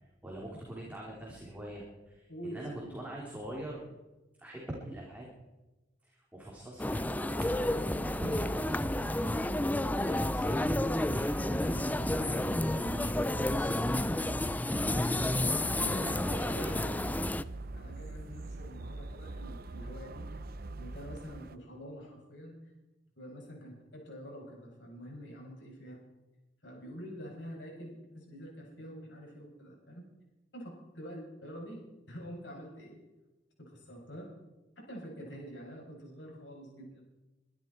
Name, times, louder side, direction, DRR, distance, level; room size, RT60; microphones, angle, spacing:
voice 1, 0.2-3.8 4.4-5.3 6.0-7.2 8.1-9.3 10.0-15.1 15.5-17.0, right 1 dB, 10° right, -4 dB, 3.4 m, -44 dB
voice 2, 2.3-2.9 15.5-17.0 17.7-20.3 20.8-22.7 23.2-26.0 26.6-30.1 30.5-33.0 33.6-34.3 34.8-37.0, equal, 75° left, -1 dB, 7.4 m, -46 dB
sound 1, 6.8-17.4, left 1 dB, 10° left, 0.4 m, -31 dB
sound 2, 7.3-21.6, right 2 dB, 55° right, 0.7 m, -42 dB
24.0 x 12.5 x 4.5 m, 1.1 s
head